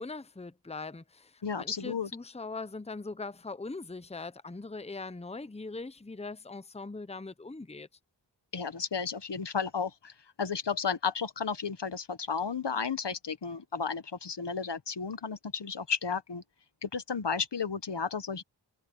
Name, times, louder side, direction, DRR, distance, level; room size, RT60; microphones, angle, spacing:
voice 1, 0.0-7.9, left 3 dB, 15° left, 0.8 m, -41 dB
voice 2, 1.4-2.1 8.5-16.4 16.8-18.4, left 6 dB, 70° left, 1.2 m, -33 dB
wide cardioid pair, 45°, 43 cm